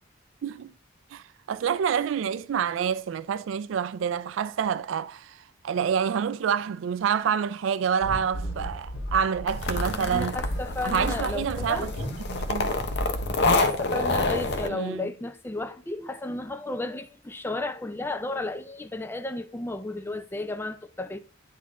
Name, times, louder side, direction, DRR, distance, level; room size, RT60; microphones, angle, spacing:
voice 1, 0.4-0.7 1.1-5.4 5.6-10.4 10.8-11.9 12.3-12.8 14.7-15.1, right 7 dB, 75° right, 0.3 m, -27 dB
sound 1, 8.0-13.6, equal, 75° left, 2.0 m, -34 dB
sound 2, 9.5-14.7, left 3 dB, 60° left, 0.7 m, -28 dB
voice 2, 10.1-11.9 13.5-21.2, left 2 dB, 10° left, 0.4 m, -33 dB
9.5 x 4.0 x 3.6 m
head